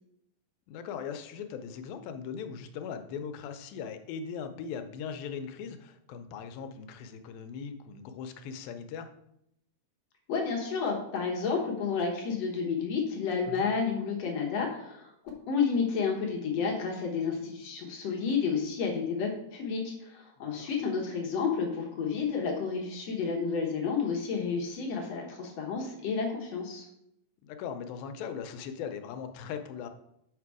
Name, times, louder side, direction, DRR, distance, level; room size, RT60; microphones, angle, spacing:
voice 1, 0.7-9.1 13.5-13.7 20.6-20.7 27.4-29.9, left 6 dB, 85° left, 8 dB, 2.5 m, -39 dB
voice 2, 10.3-15.1 15.5-26.9, left 5 dB, 60° left, 0 dB, 1.9 m, -31 dB
6.1 x 5.9 x 4.7 m, 0.78 s
omnidirectional pair, 4.1 m